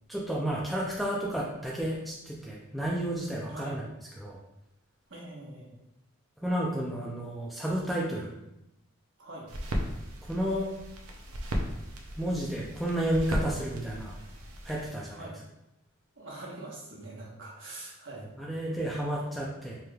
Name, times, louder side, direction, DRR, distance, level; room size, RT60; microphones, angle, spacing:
voice 1, 0.1-3.9 4.2-4.4 6.4-8.3 10.2-10.7 12.2-14.2 14.6-15.3 18.4-19.8, right 1 dB, ahead, -4 dB, 0.4 m, -31 dB
voice 2, 5.1-5.8 9.2-9.5 15.1-15.4 16.2-18.3, right 2 dB, 55° right, -4 dB, 1.1 m, -43 dB
sound 1, 9.5-14.9, equal, 80° right, 0.6 m, -36 dB
4.8 x 3.1 x 2.3 m, 0.88 s
head